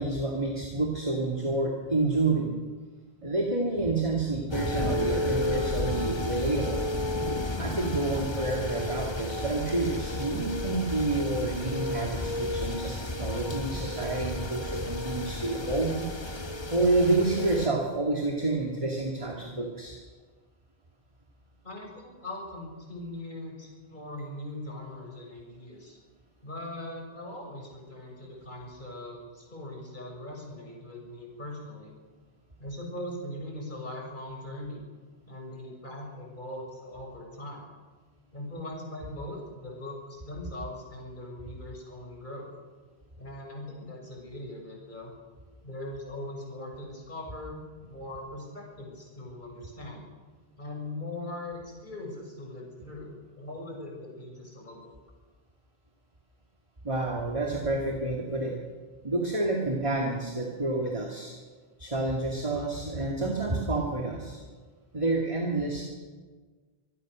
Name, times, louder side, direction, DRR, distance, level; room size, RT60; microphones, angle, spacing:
voice 1, 0.0-2.6 3.2-6.8 7.6-16.0 16.7-20.0 56.8-58.5 59.0-61.3 61.8-64.4 64.9-65.8, right 2 dB, 30° right, 0 dB, 2.5 m, -29 dB
sound 1, 4.5-17.7, left 1 dB, 25° left, 1.2 m, -32 dB
voice 2, 21.6-26.0 26.4-31.9 32.6-34.8 35.3-37.6 38.3-42.5 43.2-45.1 45.6-50.1 50.6-54.8, left 1 dB, 50° left, -1 dB, 6.7 m, -40 dB
26.0 x 21.0 x 6.4 m, 1.4 s
omnidirectional pair, 1.0 m